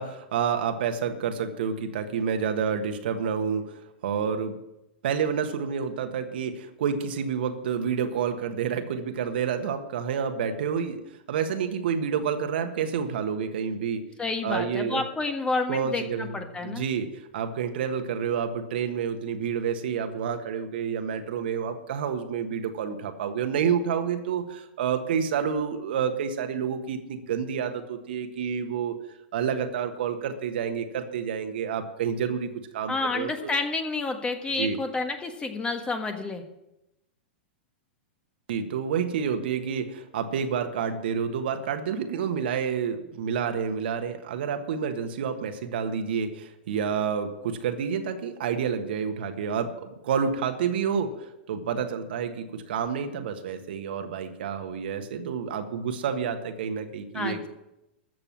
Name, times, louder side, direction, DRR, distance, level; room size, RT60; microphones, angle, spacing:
voice 1, 0.0-4.5 5.0-11.0 11.3-14.0 14.4-15.0 15.7-29.0 29.3-33.5 34.6-34.8 38.5-51.1 51.5-57.5, right 7 dB, 65° right, 6 dB, 1.5 m, -29 dB
voice 2, 14.2-16.8 32.9-36.4 57.1-57.5, left 3 dB, 15° left, 6 dB, 1.5 m, -29 dB
14.0 x 6.9 x 7.4 m, 0.90 s
hypercardioid pair, 105°, 6 cm